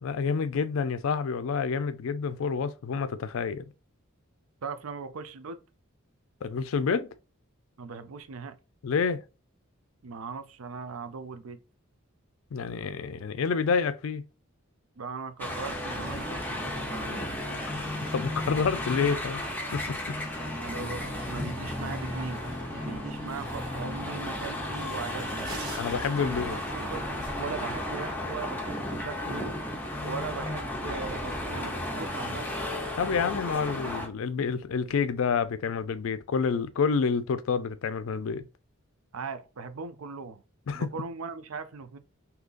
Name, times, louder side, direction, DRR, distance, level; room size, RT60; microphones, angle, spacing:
voice 1, 0.0-3.6 6.4-7.1 8.8-9.2 12.5-14.2 17.7-17.9 18.1-19.4 19.7-20.2 25.8-26.6 33.0-38.5 40.7-40.9, left 5 dB, 70° left, 0.4 m, -28 dB
voice 2, 4.6-5.6 7.8-8.6 10.0-11.6 15.0-17.8 20.5-22.4 22.7-25.5 26.2-26.3 26.7-27.0 27.4-29.7 30.0-32.4 39.1-40.4 40.7-42.0, right 5 dB, 85° right, 0.5 m, -39 dB
sound 1, 15.4-34.1, left 1 dB, 10° left, 0.6 m, -34 dB
sound 2, 15.8-27.8, right 1 dB, 55° right, 1.8 m, -46 dB
3.7 x 2.8 x 2.4 m
head